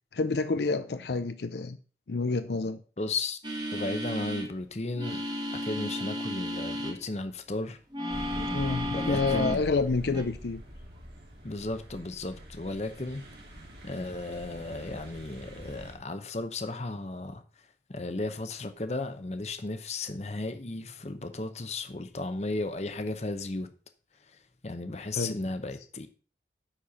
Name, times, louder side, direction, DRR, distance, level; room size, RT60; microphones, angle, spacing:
voice 1, 0.1-1.8 2.1-2.8 8.3-10.6 25.2-25.4, left 3 dB, 70° left, 0.5 m, -29 dB
voice 2, 3.0-3.4 3.7-5.2 5.5-7.8 8.9-9.6 11.4-13.2 13.8-17.4 17.9-23.7 24.3-26.1, left 2 dB, 40° left, 0.8 m, -35 dB
sound 1, 3.4-4.5 4.9-7.0 7.9-9.7 10.1-10.2, equal, 25° right, 1.3 m, -33 dB
sound 2, 8.1-15.9, equal, 65° right, 2.8 m, -44 dB
9.9 x 4.5 x 5.6 m
head